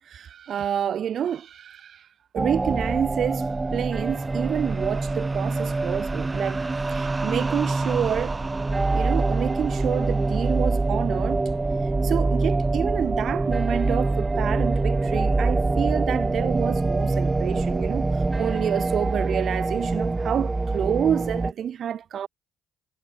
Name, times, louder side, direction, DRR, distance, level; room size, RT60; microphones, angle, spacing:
voice 1, 0.0-8.4 8.9-11.5 11.8-22.3, right 9 dB, 60° right, 3.1 m, -28 dB
sound 1, 2.4-21.5, right 3 dB, 25° right, 0.6 m, -25 dB
hypercardioid pair, 45°, 0 cm